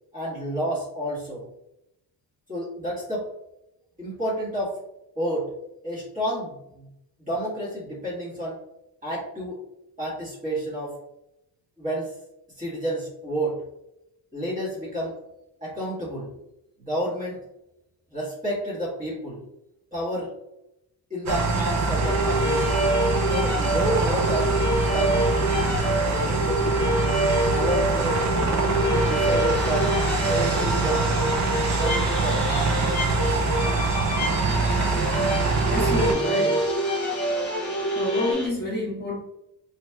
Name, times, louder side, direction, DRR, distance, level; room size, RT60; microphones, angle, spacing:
voice 1, 0.1-1.4 2.5-3.3 4.0-4.8 5.1-5.5 5.8-6.9 7.2-8.6 9.0-9.6 10.0-11.0 11.8-12.1 12.6-13.6 14.3-15.2 15.6-16.3 16.8-17.4 18.1-19.4 19.9-20.3 21.1-22.7 23.2-24.5 24.9-27.1 27.5-28.2 28.6-29.9 30.3-31.1 31.8-32.7, equal, 20° right, -7 dB, 1.3 m, -30 dB
sound 1, 21.3-36.1, right 4 dB, 45° right, 0.6 m, -24 dB
sound 2, 22.0-38.3, equal, 45° left, 0.6 m, -26 dB
sound 3, 28.2-38.5, right 2 dB, 5° left, 1.4 m, -36 dB
voice 2, 35.7-36.7 37.9-39.2, left 1 dB, 25° left, -5 dB, 1.1 m, -29 dB
3.0 x 2.9 x 2.2 m, 0.86 s
cardioid pair, 150°, 39 cm